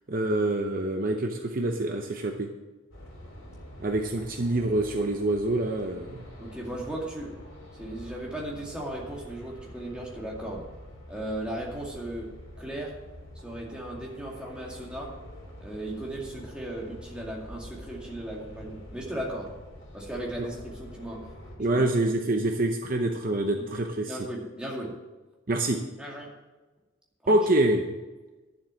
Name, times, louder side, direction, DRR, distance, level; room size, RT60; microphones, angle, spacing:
voice 1, 0.1-2.5 3.8-6.3 20.4-20.5 21.6-24.2 25.5-25.8 27.3-28.0, right 1 dB, 40° right, 4 dB, 0.7 m, -26 dB
sound 1, 2.9-21.6, left 1 dB, 70° left, 3.6 m, -46 dB
voice 2, 6.4-7.4 7.7-10.6 11.1-13.0 13.4-15.2 15.6-19.5 19.9-21.3 21.7-21.9 23.5-23.7 24.1-25.0 26.0-26.3 27.2-27.4, right 1 dB, 5° right, -4 dB, 2.3 m, -36 dB
11.0 x 7.5 x 6.4 m, 1.2 s
head